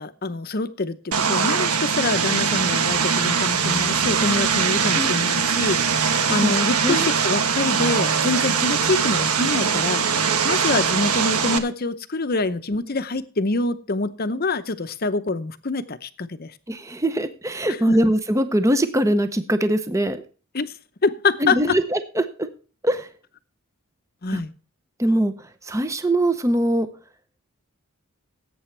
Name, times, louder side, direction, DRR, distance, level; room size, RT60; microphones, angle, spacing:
voice 1, 0.0-16.5 17.9-18.0 20.5-20.7 21.0-21.8 24.2-24.5, left 3 dB, 40° left, 0.7 m, -25 dB
Vehicle, 1.1-11.6, right 6 dB, 85° right, 1.2 m, -21 dB
voice 2, 16.7-20.2 21.4-22.5 22.8-23.1 24.3-24.4 25.0-26.9, right 1 dB, 15° right, 0.7 m, -22 dB
17.5 x 8.5 x 3.3 m
head